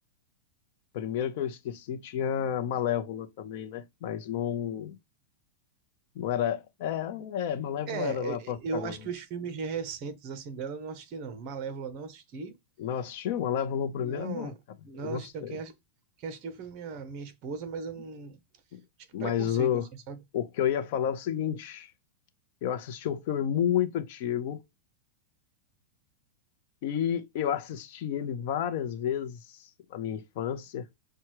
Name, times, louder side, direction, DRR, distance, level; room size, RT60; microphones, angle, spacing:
voice 1, 0.9-5.0 6.1-8.9 12.8-14.5 15.0-15.6 18.7-18.8 19.1-19.9 20.3-21.9 22.6-24.6 26.8-30.9, left 9 dB, 50° left, 0.7 m, -31 dB
voice 2, 7.9-12.5 14.0-14.5 14.8-15.7 16.2-18.4 19.2-20.1, right 5 dB, 35° right, 0.9 m, -37 dB
5.8 x 2.3 x 3.0 m
supercardioid pair, 155°, 0 cm